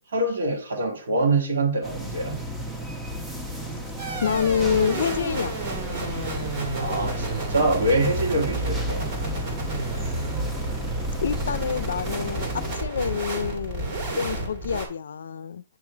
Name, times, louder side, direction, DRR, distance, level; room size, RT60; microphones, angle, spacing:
voice 1, 0.1-2.4 6.7-9.1, right 2 dB, 80° right, 2.0 m, -25 dB
sound 1, 1.8-12.7, equal, 5° right, 0.8 m, -35 dB
sound 2, 4.0-14.9, right 1 dB, 40° right, 2.1 m, -30 dB
voice 2, 4.2-5.5 11.2-12.5 12.7-15.6, left 7 dB, 80° left, 0.4 m, -27 dB
8.7 x 3.2 x 3.4 m
hypercardioid pair, 160°, 0 cm